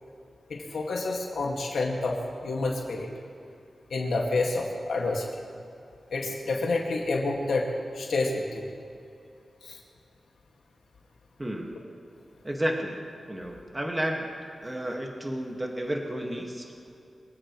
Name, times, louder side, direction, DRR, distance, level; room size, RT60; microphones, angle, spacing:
voice 1, 0.5-3.1 3.9-5.3 6.1-7.7 7.9-8.7 9.6-9.8, left 3 dB, 85° left, -1 dB, 2.1 m, -28 dB
voice 2, 11.4-11.8 12.4-13.0 13.3-14.3 14.6-16.7, right 1 dB, 15° right, 0 dB, 1.9 m, -31 dB
25.0 x 16.0 x 3.2 m, 2.6 s
wide cardioid pair, 150°, 0 cm